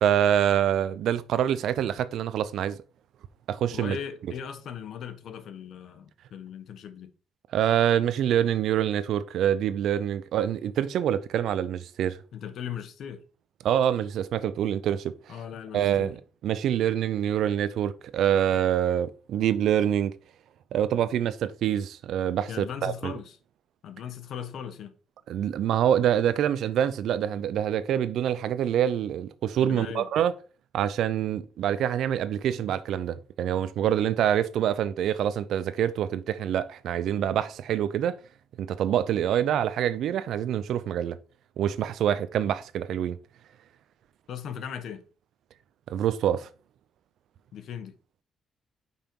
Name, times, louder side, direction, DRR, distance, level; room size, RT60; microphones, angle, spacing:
voice 1, 0.0-2.8 3.5-4.0 7.5-12.2 13.6-15.1 15.7-20.2 20.7-23.1 25.3-30.3 30.7-38.2 38.6-41.2 41.6-43.2 45.9-46.5, right 10 dB, 75° right, 0.5 m, -26 dB
voice 2, 3.7-7.1 12.3-13.2 15.3-16.2 22.5-23.4 23.8-25.0 29.6-30.1 44.3-45.0 47.5-48.0, left 8 dB, 70° left, 1.0 m, -38 dB
5.6 x 5.1 x 4.5 m
cardioid pair, 90°, 0 cm